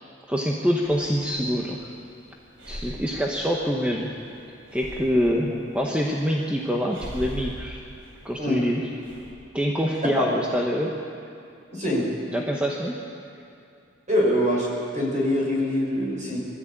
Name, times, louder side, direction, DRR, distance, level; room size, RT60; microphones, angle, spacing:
voice 1, 0.3-1.9 2.7-4.1 4.7-7.8 8.2-8.8 9.5-10.9 12.3-12.9, equal, 5° right, -1 dB, 1.2 m, -25 dB
Breathing, 0.8-9.3, equal, 85° right, 4.4 m, -42 dB
voice 2, 11.7-12.1 14.1-14.7 14.9-16.4, left 1 dB, 40° right, -3 dB, 5.4 m, -24 dB
22.5 x 14.0 x 8.8 m, 2.5 s
head